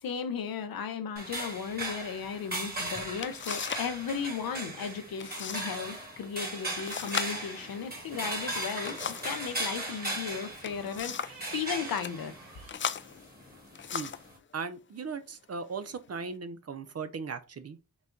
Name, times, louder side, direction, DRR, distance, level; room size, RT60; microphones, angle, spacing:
voice 1, 0.0-9.0 9.2-12.4, left 6 dB, 80° left, 0.7 m, -35 dB
sound 1, 1.2-14.4, right 1 dB, 25° right, 1.8 m, -38 dB
sound 2, 2.7-2.8 3.2-3.9 4.2-4.7 5.2-5.7 6.0-6.1 6.8-9.4 10.4-11.5 11.9-12.2 12.7-14.3 15.1-15.3 15.8-16.3, left 7 dB, 35° left, 0.4 m, -38 dB
sound 3, 6.6-12.7, right 5 dB, 90° right, 0.9 m, -52 dB
voice 2, 14.5-17.8, right 5 dB, 45° right, 0.6 m, -38 dB
4.0 x 2.3 x 3.7 m
cardioid pair, 40°, 35 cm